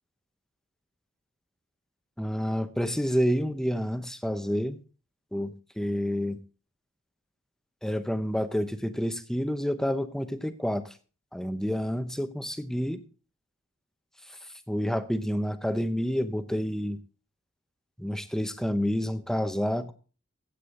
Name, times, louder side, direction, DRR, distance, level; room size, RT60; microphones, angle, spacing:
voice 1, 2.2-4.8 5.3-6.4 7.8-10.8 11.3-13.0 14.7-17.0 18.0-19.9, equal, ahead, 10 dB, 0.8 m, -29 dB
15.0 x 8.3 x 3.8 m, 0.38 s
head